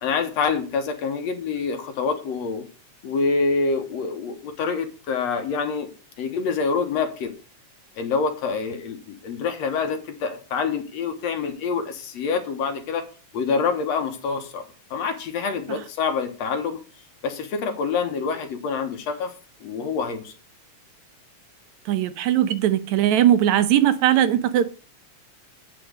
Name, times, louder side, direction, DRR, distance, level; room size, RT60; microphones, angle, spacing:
voice 1, 0.0-2.6 3.0-5.9 6.2-7.3 8.0-13.0 13.3-16.8 17.2-19.3 19.6-20.3, left 5 dB, 65° left, 2.3 m, -26 dB
voice 2, 21.9-24.7, right 11 dB, 75° right, 2.1 m, -19 dB
9.2 x 5.9 x 6.4 m
omnidirectional pair, 3.4 m